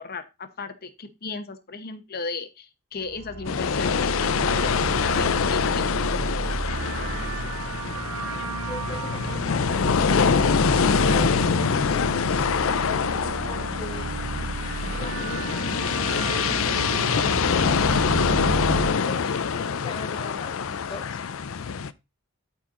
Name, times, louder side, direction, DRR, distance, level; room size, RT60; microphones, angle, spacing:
voice 1, 0.0-6.3, left 4 dB, 45° left, 1.0 m, -35 dB
sound 1, 3.0-18.9, right 3 dB, 75° right, 0.9 m, -31 dB
sound 2, 3.5-21.9, left 6 dB, 65° left, 0.5 m, -25 dB
voice 2, 8.6-10.5 11.1-12.2 13.5-14.1 14.8-18.0 18.4-21.2, left 2 dB, 20° left, 0.8 m, -39 dB
12.5 x 4.4 x 3.8 m
head